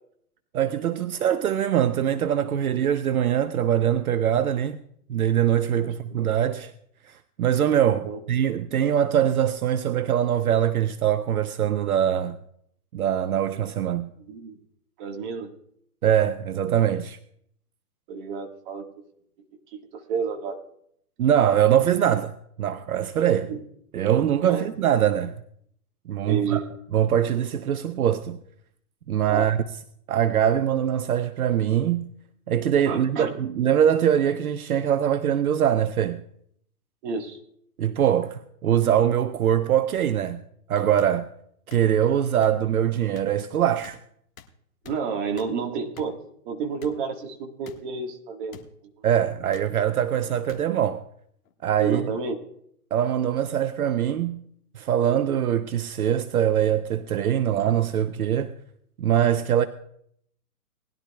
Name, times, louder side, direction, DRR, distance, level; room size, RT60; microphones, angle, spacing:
voice 1, 0.5-4.8 5.1-6.7 7.0-12.4 12.9-14.1 16.0-17.2 21.2-22.3 22.6-23.5 23.9-25.4 26.1-26.6 26.9-28.4 29.1-29.6 30.1-32.1 32.5-36.2 37.8-40.4 40.7-41.3 41.7-44.0 49.0-51.0 51.6-52.0 52.9-54.4 54.7-58.5 59.0-59.6, right 10 dB, 65° right, 0.7 m, -23 dB
voice 2, 5.8-6.2 8.0-8.2 14.3-14.6 15.0-15.5 18.1-18.9 19.7-20.6 23.5-23.6 24.4-24.7 26.3-26.7 29.3-29.5 32.8-33.3 37.0-37.4 44.8-46.2 46.4-48.6 49.0-49.1 51.8-52.4, right 5 dB, 30° right, 1.6 m, -30 dB
sound 1, 39.9-40.0 41.0-41.1 41.7-41.8 42.4-42.5 43.2-43.3 43.8-43.9 44.4-44.5 44.8-45.0 45.4-45.5 46.0-46.1 46.8-46.9 47.6-47.8 48.5-48.7 49.5-49.7 50.5-50.6 51.4-51.6, left 8 dB, 55° left, 1.6 m, -45 dB
20.0 x 11.5 x 2.3 m
hypercardioid pair, 145°, 47 cm